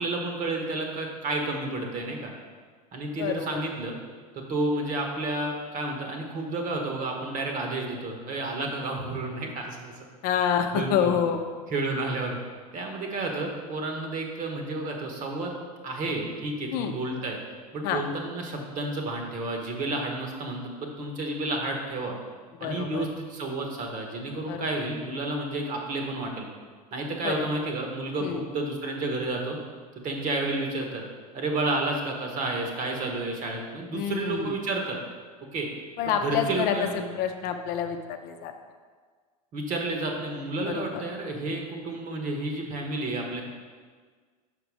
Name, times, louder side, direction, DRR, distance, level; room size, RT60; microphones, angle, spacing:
voice 1, 0.0-2.3 2.9-3.9 4.3-9.9 10.7-11.1 11.7-12.4 12.7-15.5 15.8-17.4 17.7-22.1 22.6-26.5 26.9-29.6 30.0-31.0 31.3-35.0 35.5-35.7 36.0-37.1 39.5-43.4, right 2 dB, 40° right, 2 dB, 1.4 m, -31 dB
voice 2, 3.2-3.6 10.2-11.4 16.7-16.9 17.8-18.0 22.6-23.1 24.5-24.8 27.2-27.5 28.2-28.4 33.9-34.5 36.0-36.9 37.1-38.0 38.2-38.5 40.6-41.0, left 8 dB, 55° left, 6 dB, 0.6 m, -27 dB
5.8 x 5.0 x 4.8 m, 1.6 s
hypercardioid pair, 105°, 19 cm